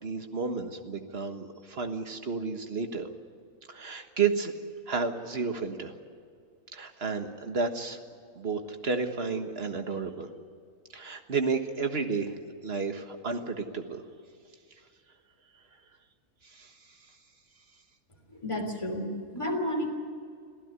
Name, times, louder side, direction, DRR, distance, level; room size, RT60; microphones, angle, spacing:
voice 1, 0.0-3.1 3.7-4.5 4.9-5.9 6.7-8.0 8.4-10.3 10.9-12.3 12.6-14.0 16.5-16.7, right 5 dB, 45° right, 6 dB, 1.7 m, -31 dB
voice 2, 18.3-19.9, left 1 dB, 20° left, 1 dB, 3.3 m, -31 dB
26.5 x 15.5 x 9.6 m, 2.3 s
omnidirectional pair, 1.5 m